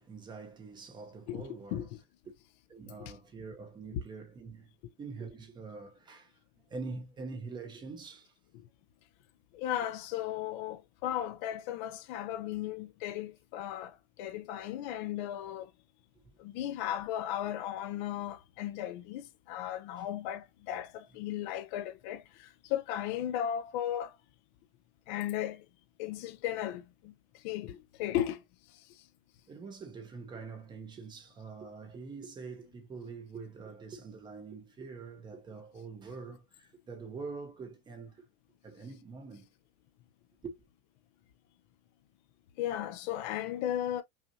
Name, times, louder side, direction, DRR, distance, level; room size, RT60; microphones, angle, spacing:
voice 1, 0.0-1.9 2.2-2.3 2.7-6.4 6.7-8.3 16.2-16.3 20.0-20.1 29.5-38.2 38.6-39.5 40.4-40.6, right 4 dB, 15° right, 0.8 m, -45 dB
voice 2, 1.3-1.9 3.0-3.1 8.5-8.6 9.5-15.7 16.4-24.2 25.1-25.7 26.0-28.4 28.7-29.1 42.6-44.0, left 11 dB, 50° left, 0.5 m, -36 dB
5.6 x 2.5 x 2.7 m
cardioid pair, 180°, 30 cm